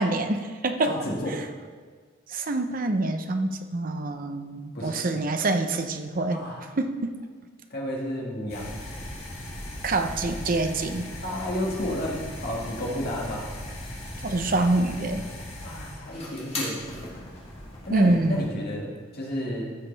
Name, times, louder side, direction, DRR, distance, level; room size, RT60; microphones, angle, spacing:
voice 1, 0.0-1.0 1.3-1.4 2.3-6.4 6.8-7.1 9.8-11.1 14.2-15.2 17.9-18.6, right 2 dB, 45° right, 7 dB, 0.6 m, -26 dB
voice 2, 0.8-1.4 4.7-5.1 6.3-6.7 7.7-8.7 11.2-13.5 15.6-16.8 17.9-19.8, left 1 dB, 50° left, -2 dB, 1.9 m, -31 dB
sound 1, 8.5-18.5, left 1 dB, 30° left, 2.1 m, -38 dB
14.5 x 6.4 x 3.4 m, 1.6 s
head